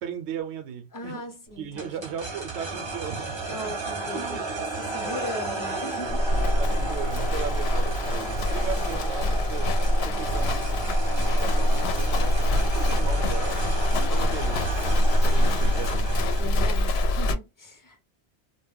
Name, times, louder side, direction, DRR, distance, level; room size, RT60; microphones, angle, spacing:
voice 1, 0.0-1.2 1.6-3.7 4.1-4.9 6.2-9.7 10.0-10.7 11.1-13.7 14.1-14.7 15.2-16.6, right 8 dB, 80° right, 0.9 m, -37 dB
voice 2, 0.9-2.2 3.5-6.6 8.6-8.8 13.9-14.5 15.2-15.8 16.4-18.0, left 1 dB, 25° left, 0.5 m, -39 dB
sound 1, 1.8-16.6, right 3 dB, 35° right, 0.5 m, -33 dB
Livestock farm animals working animals, 6.0-17.3, left 1 dB, 70° left, 0.8 m, -24 dB
2.2 x 2.1 x 3.4 m
omnidirectional pair, 1.1 m